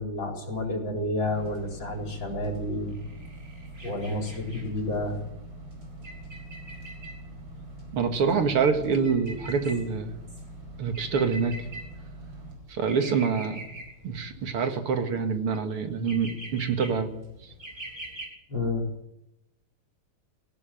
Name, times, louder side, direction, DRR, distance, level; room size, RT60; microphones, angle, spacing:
voice 1, 0.0-3.0 3.8-5.2 18.5-18.9, left 1 dB, 55° left, 2 dB, 4.8 m, -30 dB
sound 1, 1.2-18.3, right 1 dB, 40° right, 7.0 m, -46 dB
sound 2, 1.2-12.6, right 2 dB, 65° right, 5.4 m, -43 dB
voice 2, 7.9-10.1 10.8-11.5 12.7-13.6 14.0-17.1, right 5 dB, 80° right, 6 dB, 2.8 m, -26 dB
18.0 x 17.0 x 9.1 m, 0.85 s
omnidirectional pair, 2.4 m